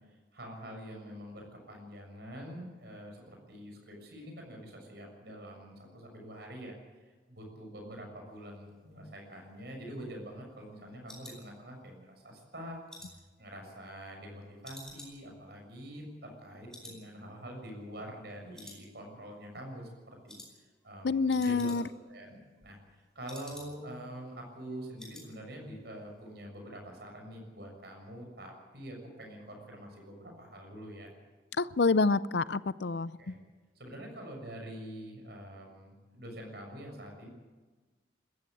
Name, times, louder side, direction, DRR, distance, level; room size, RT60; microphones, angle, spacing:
voice 1, 0.0-6.7 7.3-12.8 13.4-31.1 33.2-33.4 33.8-37.3, equal, 60° right, 2 dB, 6.9 m, -45 dB
sound 1, 9.4-12.1 12.5-14.3 14.6-16.4 16.7-17.1 17.3-17.4 17.9-18.3 18.5-19.3 19.6-19.9 20.3-20.5 20.8-20.9 21.1-22.1 22.4-24.0 24.3-24.4 24.7-25.3 25.6-25.9 26.1-26.2, left 1 dB, 5° left, 4.8 m, -52 dB
voice 2, 21.0-21.8 31.6-33.1, left 4 dB, 65° left, 17 dB, 0.6 m, -27 dB
21.5 x 14.5 x 9.1 m, 1.3 s
head